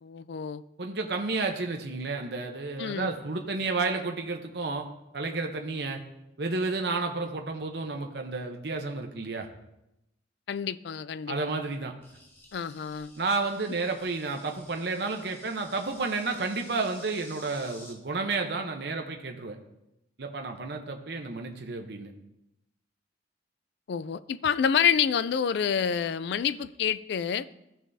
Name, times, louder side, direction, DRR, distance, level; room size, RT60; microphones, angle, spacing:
voice 1, 0.0-0.6 2.8-3.1 10.5-11.4 12.5-13.1 23.9-27.5, left 7 dB, 65° left, 16 dB, 0.3 m, -28 dB
voice 2, 0.8-4.9 5.1-6.0 6.4-9.5 11.3-11.9 13.2-19.6 20.2-22.1, right 3 dB, 60° right, 3 dB, 0.8 m, -31 dB
Insect, 12.0-17.9, left 1 dB, 15° left, 1.2 m, -52 dB
15.0 x 6.0 x 2.7 m, 0.88 s
head